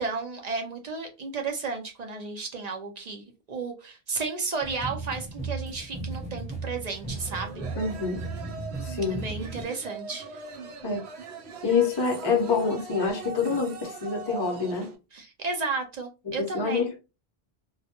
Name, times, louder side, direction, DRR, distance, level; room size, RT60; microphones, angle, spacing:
voice 1, 0.0-7.6 9.1-10.4 15.1-16.9, right 4 dB, 55° right, 0.5 m, -33 dB
sound 1, 4.6-9.6, right 3 dB, 5° right, 0.9 m, -36 dB
sound 2, 7.1-15.0, right 5 dB, 75° right, 0.8 m, -41 dB
voice 2, 7.8-8.2 8.8-9.2 10.8-11.0 11.6-14.9 16.3-17.0, left 5 dB, 35° left, 0.5 m, -26 dB
2.2 x 2.0 x 2.8 m
omnidirectional pair, 1.1 m